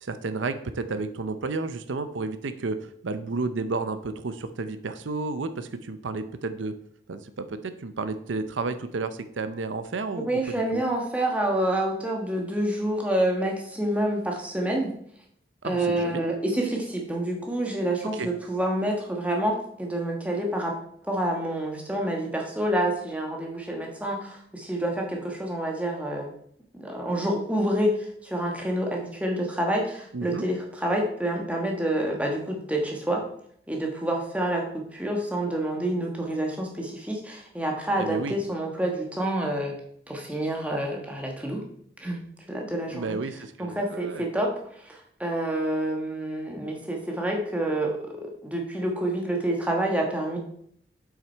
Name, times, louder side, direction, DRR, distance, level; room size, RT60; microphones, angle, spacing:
voice 1, 0.0-6.8 7.1-10.8 15.6-16.2 18.1-18.3 30.1-30.4 38.0-38.3 42.9-44.2, right 3 dB, 90° right, 11 dB, 0.6 m, -32 dB
voice 2, 10.3-14.9 15.6-20.7 21.0-26.3 26.7-33.2 33.7-39.8 40.1-41.6 42.0-42.2 42.5-43.2 43.6-50.4, right 1 dB, 5° right, 0 dB, 1.3 m, -28 dB
7.4 x 5.9 x 4.4 m, 0.65 s
head